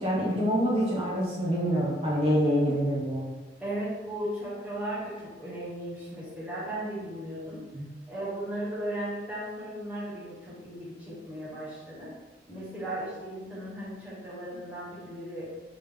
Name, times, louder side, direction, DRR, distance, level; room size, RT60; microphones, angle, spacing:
voice 1, 0.0-3.3 7.7-7.9, equal, 30° right, -6 dB, 1.1 m, -26 dB
voice 2, 3.6-7.6 8.1-12.1 12.5-15.5, right 1 dB, 5° right, -9 dB, 1.1 m, -36 dB
4.0 x 3.5 x 3.5 m, 1.2 s
head